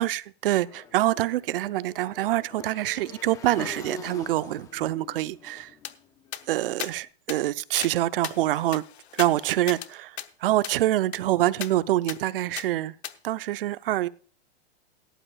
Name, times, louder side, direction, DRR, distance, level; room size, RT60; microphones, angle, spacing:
voice 1, 0.0-5.7 6.5-8.8 9.1-12.9 13.2-14.1, right 15 dB, 55° right, 0.7 m, -26 dB
Motorcycle / Engine, 0.6-6.8, left 6 dB, 10° left, 0.4 m, -44 dB
sound 1, 5.8-5.9 6.3-6.4 6.8-6.9 7.3-7.4 7.8-7.9 8.2-9.9 10.2-10.3 10.6-10.8 11.1-11.2 11.6-11.7 12.1-12.2 12.6-12.7 13.0-13.1, left 11 dB, 75° left, 1.0 m, -36 dB
17.5 x 11.0 x 2.3 m
hypercardioid pair, 145°, 32 cm